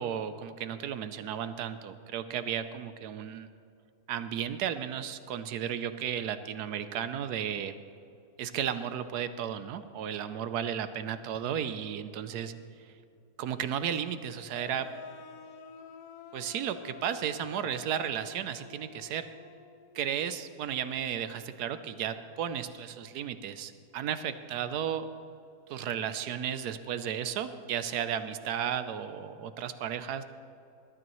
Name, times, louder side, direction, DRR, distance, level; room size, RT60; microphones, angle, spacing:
voice 1, 0.0-3.5 4.1-7.7 8.4-12.5 12.8-12.9 13.4-14.9 16.3-19.3 19.9-25.1 25.7-30.2, right 9 dB, 80° right, 11 dB, 1.2 m, -34 dB
sound 1, 14.5-20.0, left 6 dB, 70° left, 1.2 m, -49 dB
21.0 x 12.5 x 3.1 m, 2.7 s
omnidirectional pair, 1.7 m